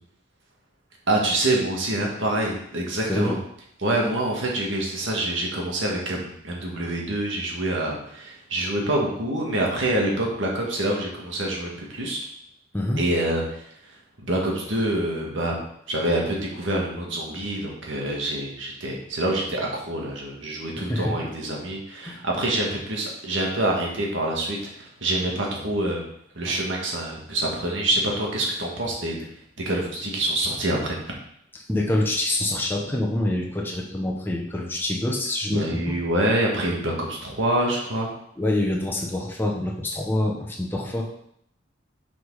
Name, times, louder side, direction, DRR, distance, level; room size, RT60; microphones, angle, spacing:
voice 1, 1.1-3.4 3.8-12.2 13.0-13.6 14.2-15.6 15.9-24.6 25.0-26.0 26.4-29.2 29.7-31.1 35.5-38.1, right 1 dB, 70° right, -1 dB, 1.9 m, -26 dB
voice 2, 20.8-21.1 22.0-22.2 31.7-36.0 38.4-41.1, left 1 dB, 10° left, -2 dB, 1.1 m, -26 dB
6.2 x 4.9 x 4.8 m, 0.71 s
head